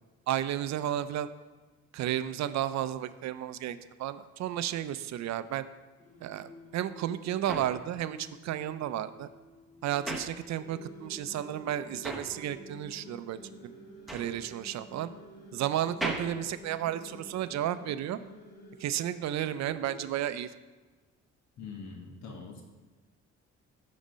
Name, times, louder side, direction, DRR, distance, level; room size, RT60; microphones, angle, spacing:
voice 1, 0.3-1.3 1.9-5.6 6.2-9.3 9.8-13.7 14.1-15.1 15.5-18.2 18.8-20.5, right 11 dB, 65° right, 13 dB, 0.4 m, -33 dB
Singing, 6.0-20.0, left 1 dB, 25° left, 1.3 m, -56 dB
sound 1, 7.5-11.0 11.3-17.5, right 1 dB, ahead, 1.0 m, -41 dB
sound 2, 10.6-18.8, right 1 dB, 50° left, 2.4 m, -50 dB
voice 2, 21.6-22.6, left 4 dB, 70° left, 1 dB, 1.5 m, -43 dB
7.3 x 4.1 x 5.1 m, 1.3 s
cardioid pair, 90°, 30 cm